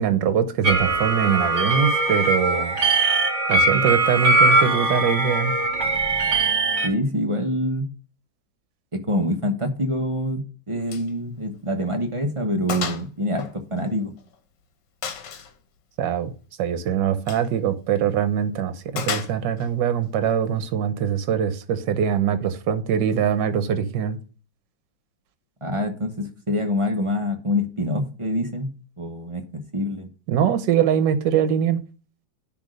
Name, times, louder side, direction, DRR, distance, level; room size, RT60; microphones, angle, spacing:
voice 1, 0.0-2.8 3.5-5.6 16.0-16.3 16.6-24.2 30.3-31.8, right 8 dB, 70° right, 1.5 m, -23 dB
sound 1, 0.6-6.9, right 2 dB, 40° right, 2.1 m, -21 dB
voice 2, 6.8-7.9 9.1-14.1 25.6-28.7 29.0-30.1, left 1 dB, 25° right, 0.8 m, -25 dB
Gunshot gunfire, 10.9-11.1 11.4-11.6 12.0-12.1 12.7-13.1 13.4-14.4 15.0-15.5 17.2-17.5 19.0-19.7, left 7 dB, 70° left, 1.6 m, -31 dB
10.0 x 3.6 x 6.4 m
omnidirectional pair, 2.0 m